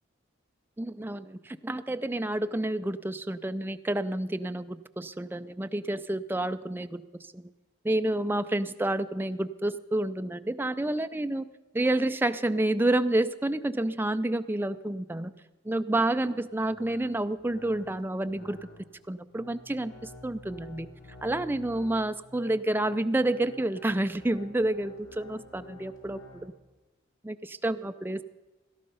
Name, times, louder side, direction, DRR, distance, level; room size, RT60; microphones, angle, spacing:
voice 1, 0.8-7.0 7.3-7.5 7.8-11.5 11.7-15.3 15.6-18.6 19.1-20.9 21.2-26.5 27.2-28.2, right 1 dB, 10° right, 10 dB, 0.4 m, -29 dB
sound 1, 16.0-26.5, left 2 dB, 80° left, 3.8 m, -50 dB
17.5 x 12.5 x 5.5 m, 1.2 s
head